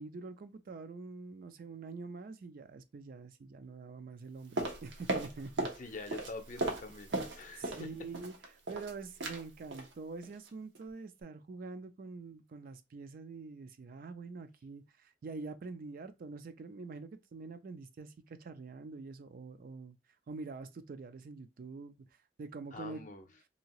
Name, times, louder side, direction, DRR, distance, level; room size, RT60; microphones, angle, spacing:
voice 1, 0.0-5.7 7.1-7.3 7.6-20.0 20.3-22.0 22.4-23.0, right 4 dB, 50° right, 0.4 m, -45 dB
sound 1, 4.6-5.8 6.1-7.9 8.1-8.9 9.2-9.4 9.7-9.9 10.2-10.5 10.8-10.9, right 2 dB, 85° right, 0.9 m, -36 dB
voice 2, 5.8-7.1 7.4-7.9 22.7-23.2, left 3 dB, 45° left, 0.6 m, -45 dB
2.8 x 2.8 x 2.8 m
head